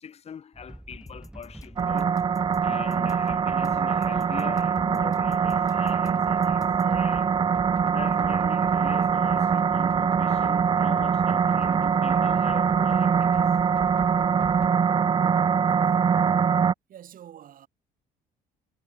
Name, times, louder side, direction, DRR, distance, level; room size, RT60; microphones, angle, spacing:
voice 1, 0.0-2.2 2.6-7.3 7.8-13.5, left 7 dB, 40° left, 1.2 m, -41 dB
sound 1, 0.5-14.7, right 1 dB, 5° right, 6.2 m, -45 dB
sound 2, 1.1-6.9, left 3 dB, 20° left, 4.1 m, -50 dB
sound 3, 1.8-16.7, right 6 dB, 25° right, 0.5 m, -23 dB
voice 2, 16.9-17.7, right 10 dB, 55° right, 2.7 m, -46 dB
cardioid pair, 110°, 17 cm